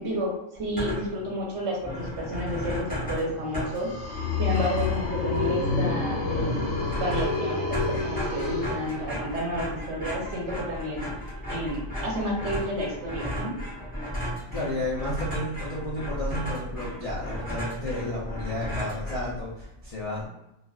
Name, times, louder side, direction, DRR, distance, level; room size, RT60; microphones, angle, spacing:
voice 1, 0.0-6.7 7.0-11.1 11.5-13.5, equal, 60° right, -2 dB, 0.9 m, -31 dB
sound 1, 0.6-1.3 1.6-1.7 1.8-19.7, equal, 10° left, 0.8 m, -35 dB
sound 2, 3.5-9.4, left 4 dB, 85° left, 1.0 m, -28 dB
voice 2, 14.2-20.3, left 1 dB, 65° left, -7 dB, 0.3 m, -32 dB
2.4 x 2.3 x 2.3 m, 0.89 s
omnidirectional pair, 1.4 m